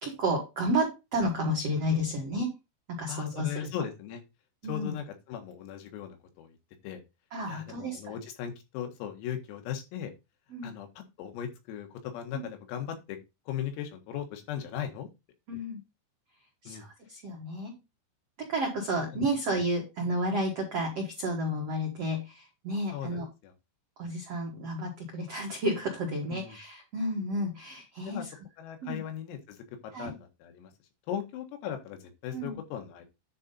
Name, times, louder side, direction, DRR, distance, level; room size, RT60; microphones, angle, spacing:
voice 1, 0.0-2.5 2.9-3.7 4.6-4.9 7.3-8.1 10.5-10.7 12.3-12.5 15.5-15.8 16.6-17.7 18.4-23.3 24.0-28.4 28.8-29.0 29.9-30.1 32.3-32.6, equal, 80° right, 0 dB, 1.4 m, -31 dB
voice 2, 3.1-4.2 4.7-6.6 6.8-7.0 7.5-10.1 10.6-13.2 13.5-15.1 16.7-16.9 22.9-23.5 26.3-26.6 28.1-28.3 28.6-29.6 30.0-30.7 31.1-33.1, left 9 dB, 85° left, 5 dB, 4.3 m, -38 dB
9.9 x 4.1 x 5.4 m, 0.25 s
omnidirectional pair, 5.9 m